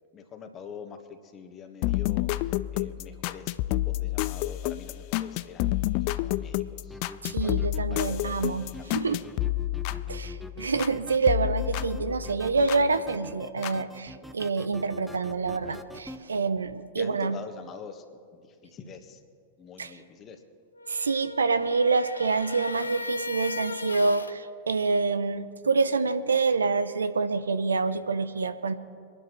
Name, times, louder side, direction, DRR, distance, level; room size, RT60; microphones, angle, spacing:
voice 1, 0.1-7.0 7.4-7.6 7.9-8.3 8.8-9.3 17.0-18.0 18.3-19.2 19.6-20.4, left 6 dB, 30° left, 7 dB, 1.5 m, -45 dB
sound 1, 1.8-11.0 11.3-12.8 13.6-13.7, left 16 dB, 50° left, 0.4 m, -30 dB
sound 2, 6.9-16.2, equal, ahead, 0.7 m, -44 dB
voice 2, 7.2-9.2 10.1-17.4 19.8-19.9 20.9-28.7, right 4 dB, 80° right, 12 dB, 0.6 m, -27 dB
sound 3, 20.7-24.4, left 3 dB, 85° left, 0.6 m, -37 dB
24.5 x 11.5 x 3.1 m, 2.2 s
figure-of-eight pair, 95°, 0 cm